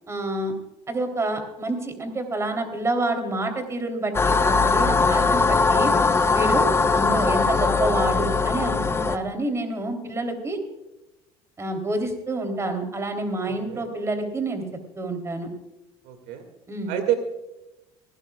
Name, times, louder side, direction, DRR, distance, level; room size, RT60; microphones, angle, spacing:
voice 1, 0.1-0.5 0.9-5.9 6.3-10.6 11.6-14.6 14.9-15.5 16.7-16.9, right 2 dB, 20° right, 5 dB, 3.3 m, -28 dB
sound 1, 4.1-9.2, left 4 dB, 20° left, 1.0 m, -20 dB
voice 2, 13.5-13.9 16.1-16.4 16.9-17.2, right 11 dB, 75° right, 7 dB, 2.2 m, -28 dB
19.5 x 17.5 x 2.4 m, 0.99 s
supercardioid pair, 100°, 12 cm